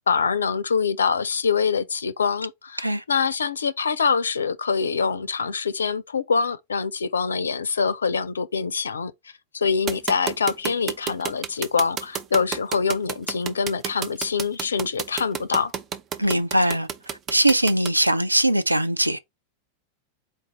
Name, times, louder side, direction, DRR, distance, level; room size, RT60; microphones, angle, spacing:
voice 1, 0.1-9.1 9.5-15.7, left 5 dB, 70° left, 0.4 m, -24 dB
sound 1, 9.9-17.9, right 8 dB, 30° right, 0.6 m, -29 dB
voice 2, 16.2-19.2, right 1 dB, 85° right, 0.4 m, -21 dB
4.4 x 2.6 x 4.5 m
figure-of-eight pair, 90°, 0 cm